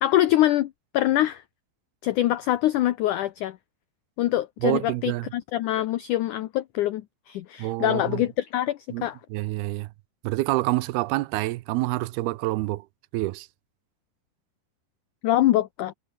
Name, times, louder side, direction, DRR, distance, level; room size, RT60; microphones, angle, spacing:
voice 1, 0.0-1.4 2.0-3.6 4.2-7.0 7.3-9.2 15.2-15.9, left 14 dB, 70° left, 1.9 m, -24 dB
voice 2, 4.6-5.3 7.6-8.2 8.9-9.0 9.3-9.9 10.2-12.9 13.1-13.5, right 19 dB, 85° right, 2.6 m, -27 dB
omnidirectional pair, 4.5 m